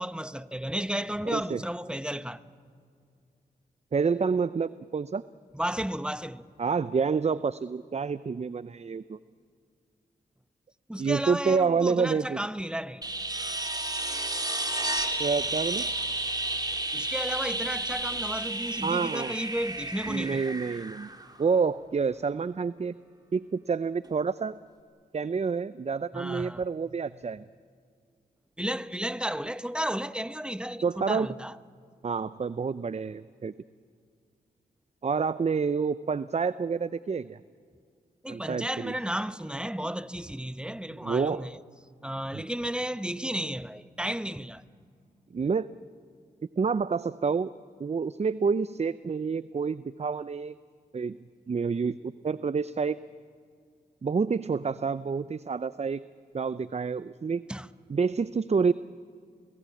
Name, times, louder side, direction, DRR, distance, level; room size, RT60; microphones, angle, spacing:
voice 1, 0.0-2.4 5.5-6.5 10.9-13.0 16.9-20.5 26.1-26.6 28.6-31.5 38.2-41.6 42.0-44.6 57.5-57.7, equal, 5° right, 1.1 m, -33 dB
voice 2, 1.3-1.6 3.9-5.2 6.6-9.2 11.0-12.4 15.2-15.9 18.8-19.3 20.1-21.1 21.4-23.0 23.3-24.6 25.1-27.4 30.8-31.3 32.0-33.5 35.0-37.4 38.3-38.9 41.0-41.5 45.3-45.7 46.6-47.5 47.8-50.6 50.9-51.2 51.5-53.0 54.0-56.0 56.3-57.4 57.9-58.7, right 5 dB, 40° right, 0.6 m, -28 dB
sound 1, 13.0-21.7 24.0-24.1, right 2 dB, 25° right, 2.9 m, -32 dB
29.5 x 19.0 x 8.5 m
cardioid pair, 45°, 17 cm